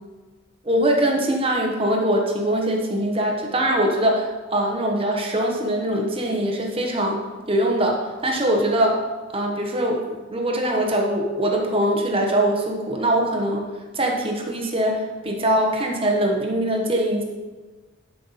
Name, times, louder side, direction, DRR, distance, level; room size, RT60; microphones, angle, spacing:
voice 1, 0.6-7.2 7.5-9.0 9.3-13.6 13.9-17.2, right 1 dB, 30° right, 1 dB, 1.1 m, -22 dB
11.5 x 5.6 x 4.1 m, 1.3 s
head